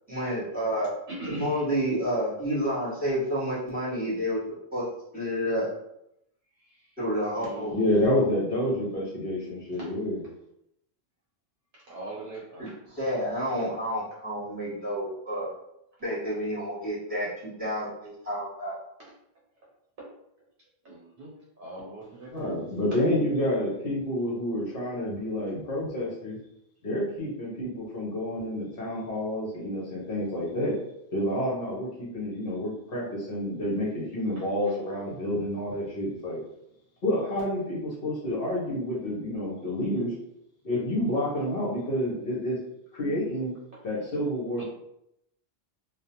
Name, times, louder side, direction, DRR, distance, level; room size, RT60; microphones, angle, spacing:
voice 1, 0.1-0.9 1.4-4.8 5.1-5.7 7.0-7.8 12.9-15.5 16.0-18.8, equal, 10° right, -9 dB, 1.1 m, -29 dB
voice 2, 1.1-1.7 6.8-6.9 7.3-7.7 9.7-9.9 11.7-13.0 19.0-19.1 20.0-20.1 20.8-22.5 22.9-23.0 34.4-34.5 44.6-44.7, right 2 dB, 60° right, -5 dB, 0.7 m, -40 dB
voice 3, 7.6-10.2 22.3-26.4 26.8-30.7 31.1-36.4 37.0-40.1 40.6-42.6 42.9-43.5 43.8-44.6, left 1 dB, 60° left, -6 dB, 0.9 m, -29 dB
2.4 x 2.1 x 2.8 m, 0.80 s
omnidirectional pair, 1.1 m